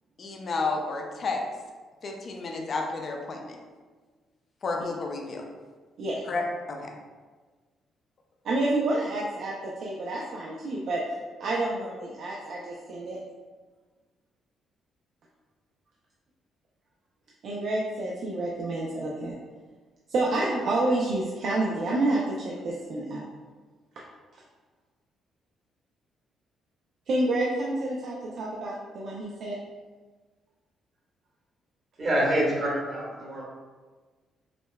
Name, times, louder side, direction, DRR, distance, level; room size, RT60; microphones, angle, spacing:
voice 1, 0.2-1.4 2.0-3.6 4.6-5.4 6.3-6.9, left 3 dB, 50° left, 2 dB, 0.5 m, -31 dB
voice 2, 8.4-11.0 11.4-13.2 17.4-19.3 20.1-23.2 27.1-29.6, right 2 dB, 65° right, -3 dB, 0.4 m, -29 dB
voice 3, 32.0-33.4, right 1 dB, 45° right, -5 dB, 1.3 m, -26 dB
4.9 x 2.1 x 2.2 m, 1.4 s
cardioid pair, 90°, 0 cm